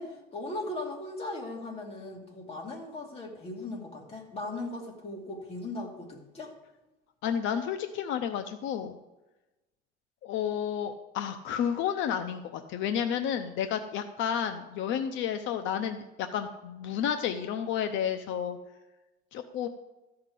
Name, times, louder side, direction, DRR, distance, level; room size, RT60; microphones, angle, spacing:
voice 1, 0.0-6.5, left 2 dB, 30° left, -1 dB, 2.6 m, -38 dB
voice 2, 7.2-9.0 10.2-18.6 19.3-19.7, left 8 dB, 75° left, 8 dB, 0.8 m, -31 dB
13.5 x 5.8 x 8.4 m, 1.1 s
cardioid pair, 160°, 20 cm